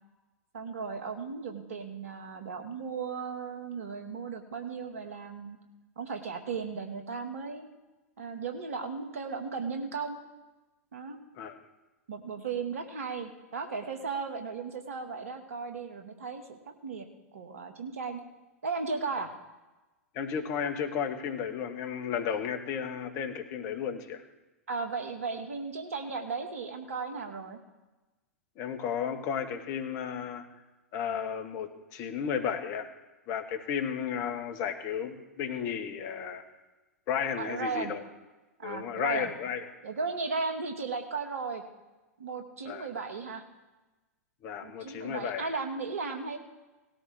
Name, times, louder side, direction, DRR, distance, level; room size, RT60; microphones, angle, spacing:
voice 1, 0.5-5.6 6.0-7.6 8.2-10.2 10.9-11.2 12.1-17.1 17.3-18.2 18.6-19.3 24.7-27.6 37.4-37.9 38.6-39.3 39.8-41.6 42.2-43.4 44.6-46.4, right 4 dB, 65° right, 5 dB, 2.0 m, -36 dB
voice 2, 20.1-24.2 28.6-30.5 30.9-32.9 33.3-36.4 37.1-38.0 38.6-39.7 42.7-42.9 44.4-45.5, left 7 dB, 40° left, 6 dB, 1.8 m, -33 dB
18.5 x 13.0 x 3.6 m, 1.1 s
figure-of-eight pair, 95°, 8 cm